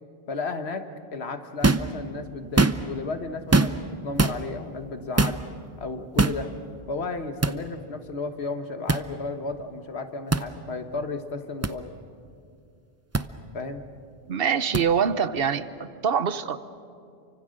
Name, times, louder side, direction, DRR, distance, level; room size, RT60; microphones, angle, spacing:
voice 1, 0.3-3.8 4.0-5.4 5.8-6.5 6.9-11.9 13.5-13.8, left 3 dB, 85° left, 7 dB, 1.7 m, -33 dB
sound 1, 1.6-1.9 2.4-3.0 3.5-3.9 4.2-4.4 5.2-5.4 6.2-6.4 7.4-7.6 8.9-9.0 10.3-10.5 11.6-11.7 13.1-13.2 14.7-14.8, right 2 dB, 20° right, 0.5 m, -21 dB
voice 2, 14.3-15.7 16.0-16.6, right 7 dB, 65° right, 13 dB, 1.0 m, -24 dB
29.5 x 24.5 x 6.5 m, 2.4 s
omnidirectional pair, 1.1 m